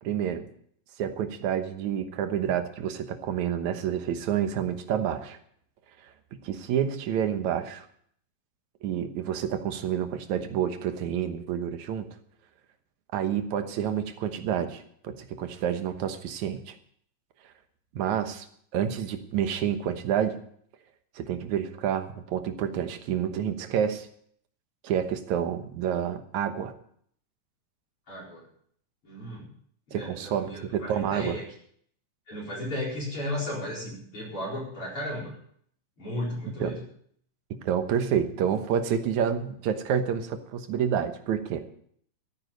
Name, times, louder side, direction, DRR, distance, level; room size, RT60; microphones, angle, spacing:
voice 1, 0.0-0.5 1.0-5.4 6.0-6.1 6.4-7.9 8.8-12.2 13.1-16.8 17.9-18.5 18.7-20.4 21.2-24.1 24.8-26.7 29.9-31.4 36.6-36.8 37.5-41.7, right 9 dB, 65° right, 8 dB, 2.4 m, -29 dB
voice 2, 28.1-28.5 29.0-29.5 29.9-31.4 32.3-35.4 36.0-36.8, left 1 dB, 40° left, -4 dB, 5.1 m, -35 dB
14.0 x 9.7 x 6.4 m, 0.62 s
omnidirectional pair, 3.8 m